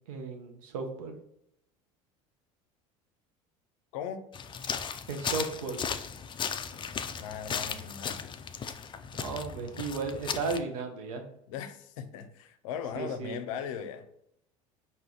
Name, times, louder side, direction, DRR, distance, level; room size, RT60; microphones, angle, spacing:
voice 1, 0.1-1.2 5.1-5.8 9.1-11.2 12.9-13.4, right 4 dB, 80° right, 4 dB, 0.9 m, -35 dB
voice 2, 3.9-4.2 7.2-8.3 11.5-14.0, left 8 dB, 75° left, 9 dB, 0.6 m, -38 dB
sound 1, 4.3-10.6, left 7 dB, 30° left, 0.4 m, -36 dB
5.0 x 2.7 x 3.8 m, 0.77 s
hypercardioid pair, 80°, 17 cm